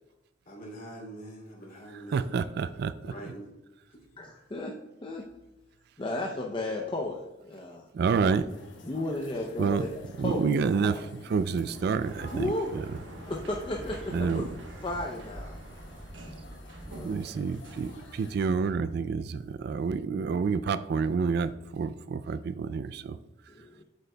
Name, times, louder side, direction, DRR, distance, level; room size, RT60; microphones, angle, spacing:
voice 1, 0.4-2.3 3.0-3.5 3.9-4.2 9.2-9.6, right 1 dB, 50° left, -3 dB, 2.6 m, -44 dB
voice 2, 2.1-3.1 7.9-8.5 9.6-9.9 10.2-13.0 14.1-14.6 16.9-23.2 23.4-23.7, right 5 dB, 60° right, 14 dB, 0.3 m, -29 dB
voice 3, 4.2-5.3 6.0-7.9 8.9-9.9 10.2-10.9 12.3-12.7 13.3-14.5 14.8-15.5 16.9-17.1 23.5-23.8, left 2 dB, 25° left, 0 dB, 0.6 m, -34 dB
sound 1, 8.5-18.4, left 2 dB, 75° left, 1.0 m, -51 dB
Sliding door, 11.6-18.7, right 1 dB, 85° right, 1.1 m, -47 dB
Thunder, 12.9-19.4, equal, 10° right, 1.2 m, -48 dB
8.1 x 7.7 x 2.2 m, 0.99 s
head